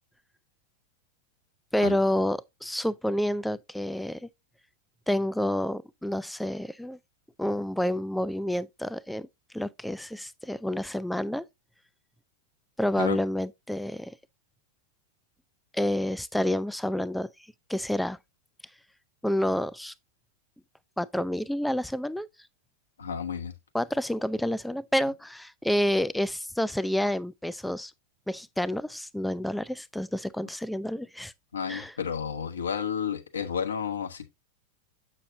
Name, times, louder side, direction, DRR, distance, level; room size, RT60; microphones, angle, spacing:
voice 1, 1.7-4.2 5.1-7.0 7.4-9.3 9.5-11.4 12.8-14.2 15.7-17.3 17.7-18.2 19.2-19.9 21.0-22.3 23.7-27.9 28.3-31.3 31.7-31.9, left 1 dB, 5° left, 0.3 m, -29 dB
voice 2, 23.0-23.5 31.5-34.3, left 7 dB, 70° left, 1.2 m, -31 dB
7.6 x 6.5 x 2.7 m
figure-of-eight pair, 90°, 0 cm